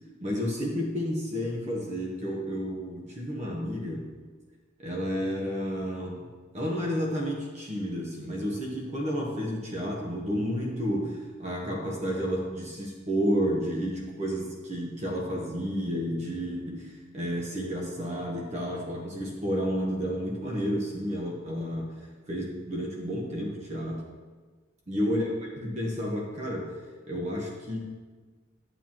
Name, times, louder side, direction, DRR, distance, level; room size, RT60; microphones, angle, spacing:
voice 1, 0.2-4.1 4.8-6.3 6.5-21.9 22.3-24.0 24.9-25.3 25.6-26.7 27.1-27.8, equal, 35° right, -2 dB, 1.0 m, -31 dB
10.0 x 7.5 x 3.0 m, 1.4 s
head